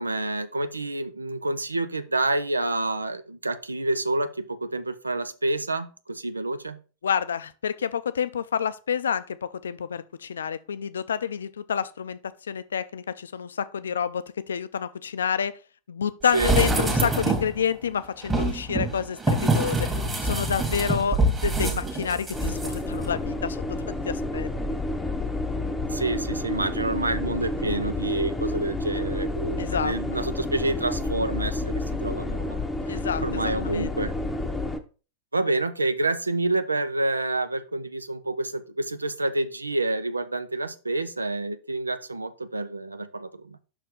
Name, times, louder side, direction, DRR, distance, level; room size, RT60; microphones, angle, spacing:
voice 1, 0.0-6.8 16.3-16.5 25.9-32.6 32.9-34.1 35.3-43.6, right 2 dB, 80° right, 0.5 m, -28 dB
voice 2, 7.0-15.5 15.9-19.9 20.2-24.5 29.6-29.9 32.9-33.9, left 7 dB, 70° left, 0.4 m, -29 dB
sound 1, 16.3-17.6 18.2-22.7 23.0-23.1, right 2 dB, 15° right, 1.8 m, -25 dB
sound 2, 22.3-34.8, left 2 dB, 10° left, 0.8 m, -30 dB
6.0 x 4.4 x 5.2 m
figure-of-eight pair, 90°, 0 cm